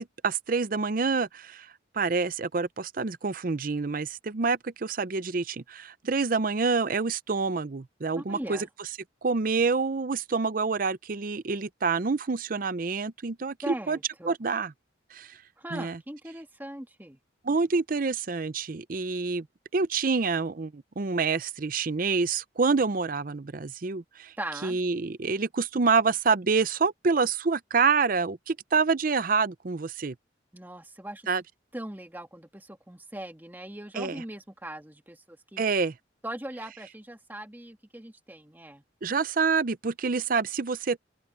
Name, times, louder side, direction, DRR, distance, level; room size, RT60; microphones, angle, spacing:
voice 1, 0.0-8.9 9.2-14.0 14.2-14.7 15.1-15.4 15.7-16.0 17.4-19.5 19.7-24.3 24.6-30.1 31.3-31.4 34.0-34.2 35.6-35.9 39.0-41.0, right 4 dB, 50° right, 0.6 m, -27 dB
voice 2, 8.2-8.7 13.6-14.4 15.6-17.2 24.4-24.8 30.5-31.3 31.7-35.6 36.2-38.8, right 1 dB, 10° right, 1.8 m, -40 dB
open air
head